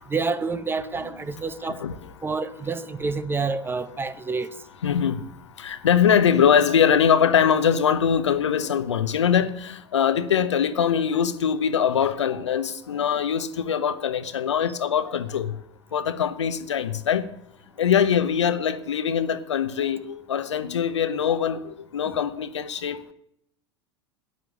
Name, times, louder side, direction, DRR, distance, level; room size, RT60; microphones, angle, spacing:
voice 1, 0.0-1.8 2.2-4.5, right 4 dB, 15° right, 0.8 m, -28 dB
voice 2, 4.8-5.2 5.6-15.5 15.9-17.3 17.8-23.0, left 8 dB, 80° left, 0.8 m, -22 dB
11.0 x 9.8 x 6.3 m
hypercardioid pair, 85°, 15 cm